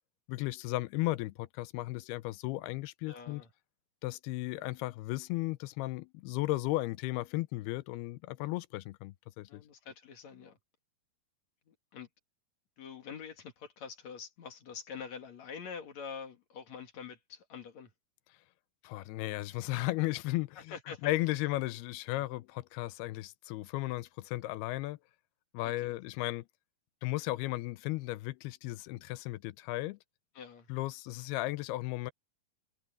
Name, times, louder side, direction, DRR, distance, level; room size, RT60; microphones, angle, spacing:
voice 1, 0.3-3.4 4.0-9.6 18.8-20.8 21.0-25.0 25.5-26.5 27.0-30.0 30.7-32.1, left 18 dB, 85° left, 2.6 m, -35 dB
voice 2, 3.1-3.5 9.5-10.6 11.7-12.1 12.8-17.9 20.7-21.1 22.1-22.3 25.6-25.9 30.3-30.7, left 6 dB, 50° left, 2.9 m, -46 dB
omnidirectional pair, 4.5 m